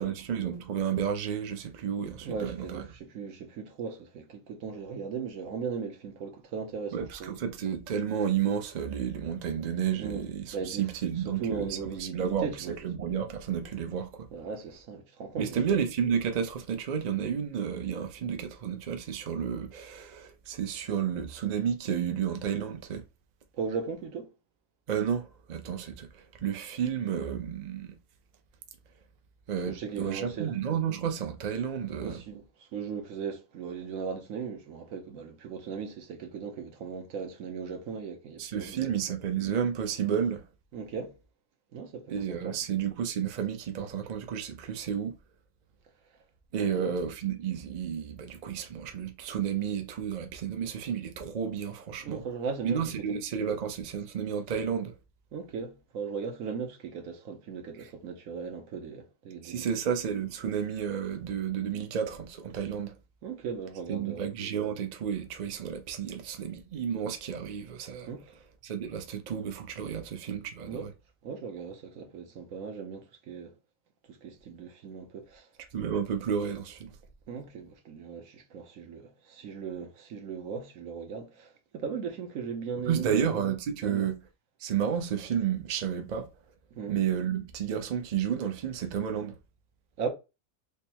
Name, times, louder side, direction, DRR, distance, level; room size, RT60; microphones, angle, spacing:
voice 1, 0.0-2.8 6.9-14.3 15.4-23.0 24.9-28.0 29.5-32.2 38.4-40.5 42.1-45.2 46.5-52.2 52.6-54.9 57.8-57.9 59.4-62.9 63.9-68.1 68.6-70.9 75.7-76.9 82.9-84.2 84.6-86.3 86.9-89.4, right 8 dB, 55° right, 0.5 m, -31 dB
voice 2, 2.2-7.4 10.0-10.3 10.5-10.9 11.2-12.8 14.3-15.8 23.6-24.3 29.7-30.6 32.0-32.4 32.7-39.0 40.7-41.1 41.7-42.6 46.6-47.0 52.0-52.8 55.3-59.7 63.2-64.3 68.1-68.2 69.9-70.0 70.7-70.9 71.2-73.5 74.1-75.5 77.3-83.3 83.8-84.1 86.7-87.0 90.0-90.1, right 6 dB, 70° right, 1.2 m, -37 dB
3.4 x 2.1 x 4.2 m
omnidirectional pair, 1.5 m